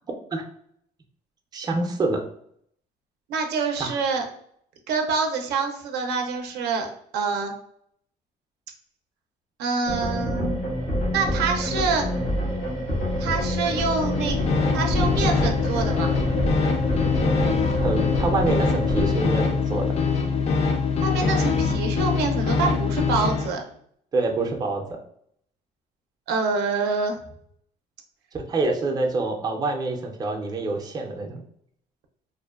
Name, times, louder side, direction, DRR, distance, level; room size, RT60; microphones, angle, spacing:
voice 1, 1.5-2.2 3.8-3.9 17.8-19.9 24.1-24.8 28.3-31.4, right 2 dB, 25° right, 2 dB, 0.4 m, -26 dB
voice 2, 3.3-4.3 4.9-6.9 7.1-7.5 9.6-10.6 10.9-12.1 13.2-14.4 14.7-16.2 21.0-23.6 26.3-27.2, right 4 dB, 80° right, 3 dB, 0.4 m, -26 dB
sound 1, 9.9-19.1, equal, 80° left, 1.1 m, -27 dB
sound 2, 14.0-23.5, left 5 dB, 40° left, 0.4 m, -23 dB
2.5 x 2.1 x 2.3 m, 0.68 s
cardioid pair, 110°, 17 cm